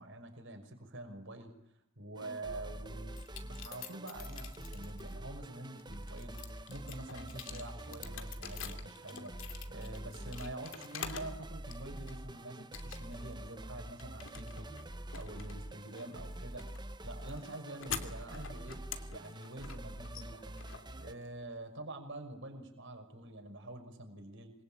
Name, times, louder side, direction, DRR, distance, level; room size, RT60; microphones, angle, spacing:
voice 1, 0.0-1.5 2.0-6.4 6.7-14.7 15.1-16.7 17.0-20.6 21.0-24.5, right 2 dB, 65° right, 5 dB, 5.8 m, -46 dB
sound 1, 2.2-21.1, right 1 dB, 20° right, 1.2 m, -46 dB
sound 2, 3.1-5.1 5.7-11.4 11.7-12.3 12.7-13.3 13.6-21.5, left 7 dB, 70° left, 2.9 m, -47 dB
26.5 x 23.0 x 8.9 m, 0.79 s
head